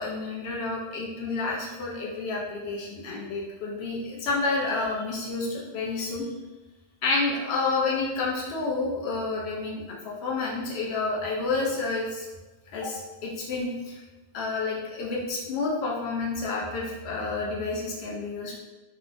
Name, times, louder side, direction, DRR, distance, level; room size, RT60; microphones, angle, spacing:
voice 1, 0.0-6.3 7.0-12.3 12.7-14.0 14.3-18.5, left 3 dB, 80° left, -3 dB, 0.9 m, -29 dB
3.0 x 2.0 x 2.5 m, 1.1 s
omnidirectional pair, 1.1 m